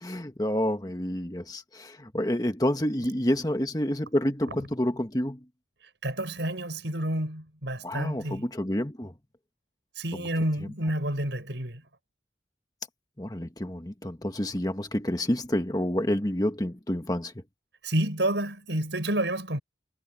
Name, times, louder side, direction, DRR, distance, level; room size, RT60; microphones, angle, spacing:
voice 1, 0.0-5.4 7.8-9.1 10.1-10.2 13.2-17.3, left 1 dB, 20° left, 1.6 m, -28 dB
voice 2, 6.0-8.4 10.0-11.8 17.8-19.6, right 1 dB, 80° right, 6.2 m, -29 dB
head